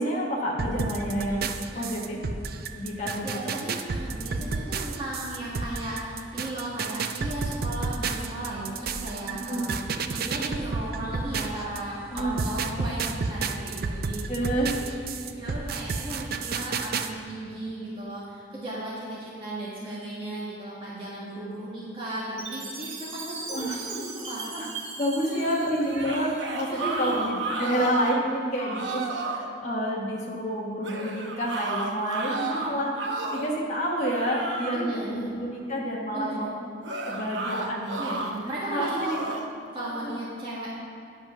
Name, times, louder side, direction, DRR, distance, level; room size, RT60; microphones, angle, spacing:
voice 1, 0.0-1.5 1.7-2.2 2.8-3.3 9.5-9.6 12.1-12.5 14.3-14.8 23.5-23.8 24.5-24.7 25.0-32.9 33.3-36.5 37.1-38.2 38.7-39.2 40.0-40.1, equal, 40° left, -4 dB, 1.2 m, -29 dB
sound 1, 0.6-11.8 12.2-17.1, right 4 dB, 55° right, 0.5 m, -31 dB
voice 2, 3.2-24.5 25.2-25.7 26.7-27.2 32.2-32.6 34.7-35.3 36.1-36.5 38.0-39.3 39.7-40.7, right 1 dB, 30° right, -8 dB, 1.6 m, -36 dB
Chime, 22.4-26.6, right 4 dB, 90° right, 1.5 m, -39 dB
sound 2, 25.8-28.2 28.5-29.5 30.8-33.6 34.0-34.9 36.8-38.3 38.8-39.5, right 3 dB, 70° right, 0.9 m, -32 dB
10.5 x 5.4 x 5.9 m, 2.5 s
head